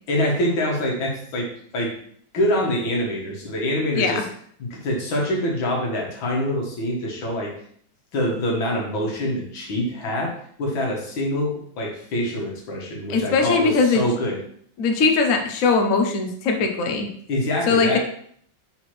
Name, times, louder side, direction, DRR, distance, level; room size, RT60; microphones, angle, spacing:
voice 1, 0.1-2.0 2.3-4.2 4.6-7.5 8.1-14.4 17.3-18.0, left 1 dB, 85° left, -1 dB, 2.2 m, -25 dB
voice 2, 13.1-14.0 14.8-17.1 17.7-18.0, left 4 dB, 55° left, 4 dB, 1.0 m, -20 dB
5.9 x 4.9 x 3.2 m, 0.63 s
omnidirectional pair, 2.1 m